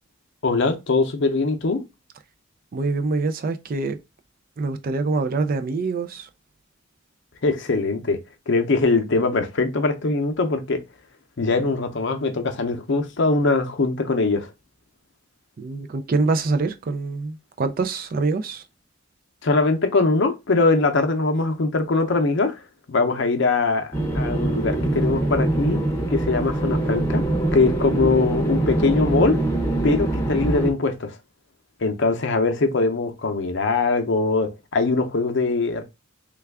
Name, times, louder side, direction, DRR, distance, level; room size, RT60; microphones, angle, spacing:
voice 1, 0.4-1.8 7.4-8.2 8.5-10.8 11.4-14.5 19.4-22.6 22.9-25.8 26.1-27.2 27.5-29.4 29.8-31.2 31.8-35.8, left 3 dB, 60° left, 0.6 m, -22 dB
voice 2, 2.7-4.0 4.6-6.3 15.6-18.6, right 3 dB, 45° right, 0.4 m, -25 dB
sound 1, 23.9-30.7, right 2 dB, 15° left, 0.7 m, -23 dB
3.3 x 2.3 x 3.4 m
head